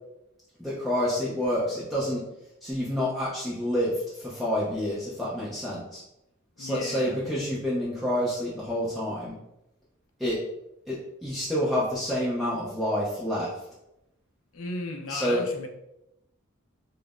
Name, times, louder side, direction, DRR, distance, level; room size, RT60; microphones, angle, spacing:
voice 1, 0.6-2.2 2.6-6.0 6.6-9.3 10.2-10.4 10.9-13.5 15.1-15.4, equal, ahead, -9 dB, 0.5 m, -28 dB
voice 2, 6.6-7.2 14.5-15.7, left 2 dB, 75° left, 4 dB, 0.5 m, -35 dB
5.2 x 2.0 x 2.4 m, 0.88 s
head